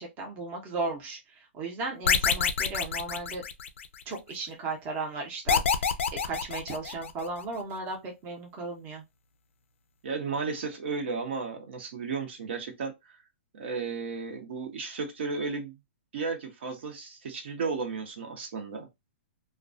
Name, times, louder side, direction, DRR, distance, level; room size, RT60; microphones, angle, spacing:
voice 1, 0.0-3.4 4.1-9.0, right 3 dB, 25° right, 0.7 m, -36 dB
sound 1, 2.1-4.0 5.5-7.3, left 6 dB, 80° left, 0.4 m, -27 dB
voice 2, 10.0-13.2 13.6-15.7 16.1-18.9, right 4 dB, 65° right, 0.8 m, -34 dB
2.3 x 2.2 x 2.4 m
hypercardioid pair, 155°, 7 cm